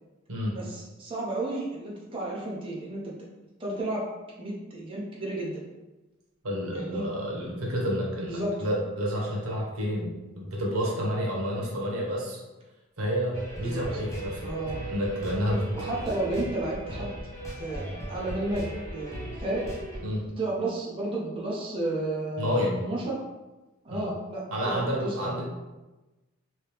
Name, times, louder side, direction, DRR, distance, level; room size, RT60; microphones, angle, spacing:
voice 1, 0.5-3.1 3.6-4.1 4.4-5.6 6.7-7.0 8.3-8.5 13.6-13.8 14.4-14.8 15.7-17.2 17.6-17.8 18.1-19.7 20.4-23.2 23.8-25.4, right 2 dB, 25° right, -5 dB, 0.6 m, -32 dB
voice 2, 6.4-12.4 13.0-14.6 14.9-15.7 17.9-18.0 20.0-20.2 22.4-22.8 23.9-24.1 24.5-25.4, equal, 85° right, -2 dB, 0.9 m, -29 dB
sound 1, 13.3-20.0, right 1 dB, 15° left, 0.7 m, -37 dB
3.1 x 2.8 x 3.3 m, 1.1 s
head